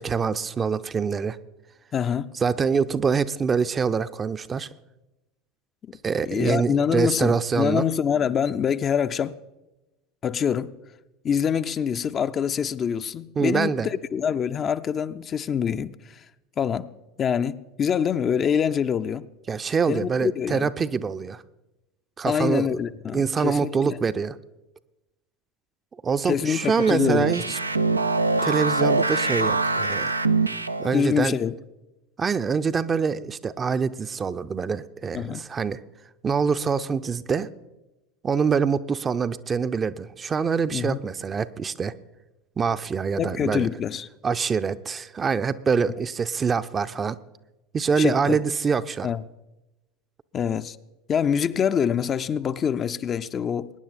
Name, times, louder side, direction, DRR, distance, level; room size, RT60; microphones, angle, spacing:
voice 1, 0.0-1.4 2.3-4.7 6.0-7.9 13.4-13.9 19.5-21.4 22.2-22.8 23.1-24.4 26.0-27.6 28.4-30.1 30.8-31.4 32.2-35.8 36.2-37.5 38.2-41.9 42.6-43.7 44.2-47.2 47.7-49.1, right 5 dB, 25° right, 0.5 m, -25 dB
voice 2, 1.9-2.3 5.9-6.0 6.3-9.4 10.2-10.7 11.2-16.2 16.6-16.9 17.2-19.3 19.9-20.7 22.3-24.0 26.3-27.3 30.9-31.5 35.1-35.4 40.7-41.0 43.2-44.1 48.0-48.4 49.0-49.2 50.3-50.8 51.1-53.7, left 7 dB, 35° left, 0.5 m, -25 dB
sound 1, 26.6-31.0, right 3 dB, 85° right, 0.4 m, -24 dB
22.0 x 10.0 x 4.1 m
figure-of-eight pair, 75°, 0 cm